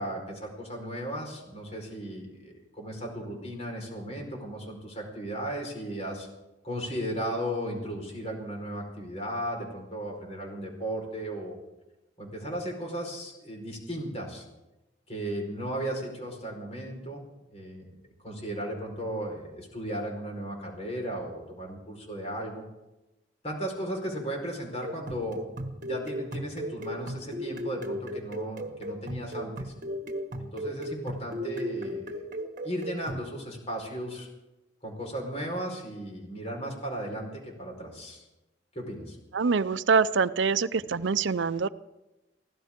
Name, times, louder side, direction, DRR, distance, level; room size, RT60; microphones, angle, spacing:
voice 1, 0.0-6.3 6.6-11.6 12.2-14.4 15.1-17.2 17.5-17.9 18.2-22.6 23.4-25.4 25.8-29.7 30.4-32.2 32.6-34.3 34.8-38.3 38.7-39.2, right 1 dB, 35° left, 1 dB, 4.5 m, -35 dB
sound 1, 24.8-33.3, equal, 45° right, 1.6 m, -36 dB
voice 2, 39.3-41.7, right 5 dB, 90° right, 15 dB, 0.6 m, -25 dB
24.0 x 16.0 x 3.7 m, 0.98 s
head